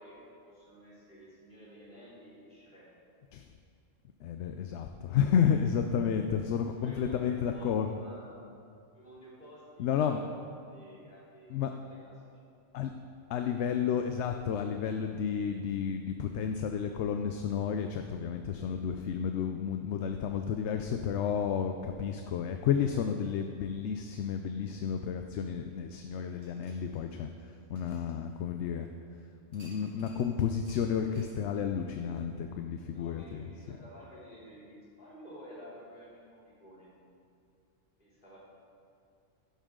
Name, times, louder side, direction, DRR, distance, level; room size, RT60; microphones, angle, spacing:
voice 1, 0.0-2.9 6.7-8.5 8.9-10.3 10.6-12.2 32.9-36.9 38.0-38.4, equal, 45° left, -8 dB, 3.2 m, -52 dB
voice 2, 4.2-7.9 9.8-10.2 11.5-11.7 12.7-12.9 13.3-28.9 29.5-33.8, left 7 dB, 70° left, 6 dB, 0.8 m, -31 dB
sound 1, 26.4-28.8 29.5-30.3 30.7-30.8 31.1-31.4, right 1 dB, 65° right, 2.6 m, -59 dB
11.5 x 11.0 x 3.7 m, 2.4 s
omnidirectional pair, 1.3 m